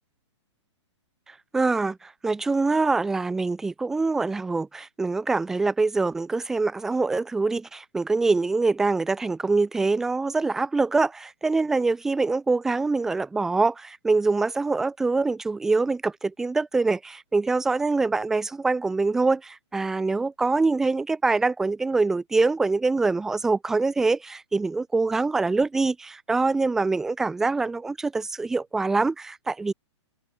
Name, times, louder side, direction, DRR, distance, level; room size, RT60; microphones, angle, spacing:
voice 1, 1.5-29.7, right 3 dB, 5° right, 0.5 m, -24 dB
hypercardioid pair, 175°, 16 cm